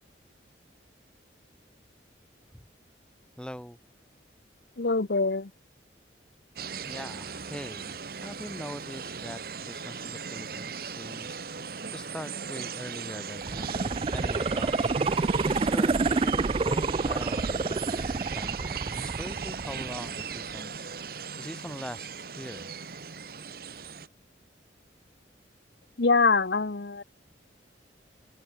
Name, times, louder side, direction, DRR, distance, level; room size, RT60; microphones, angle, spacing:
voice 1, 3.4-3.8 6.8-8.0 8.2-22.8, equal, 5° left, 1.5 m, -42 dB
voice 2, 4.8-5.5 26.0-27.0, left 4 dB, 65° left, 0.9 m, -24 dB
sound 1, 6.6-24.1, right 6 dB, 50° right, 1.4 m, -38 dB
sound 2, 13.4-20.4 20.8-20.9, right 3 dB, 30° right, 0.4 m, -28 dB
open air
head